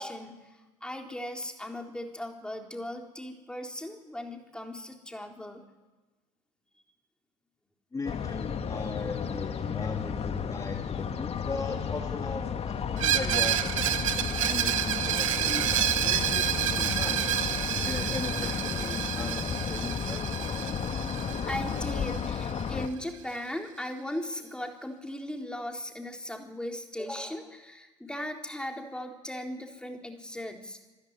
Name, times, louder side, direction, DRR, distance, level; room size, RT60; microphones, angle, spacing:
voice 1, 0.0-5.6 21.5-30.8, left 1 dB, 5° left, 3 dB, 3.9 m, -38 dB
voice 2, 7.9-13.6 13.8-14.0 14.4-15.7 16.0-17.2 17.8-20.2, left 3 dB, 20° left, 3 dB, 2.7 m, -38 dB
sound 1, 8.0-22.9, left 7 dB, 40° left, 2.0 m, -33 dB
Screech, 13.0-22.6, right 10 dB, 80° right, 1.2 m, -29 dB
25.5 x 14.5 x 9.7 m, 1.2 s
figure-of-eight pair, 60°, 16 cm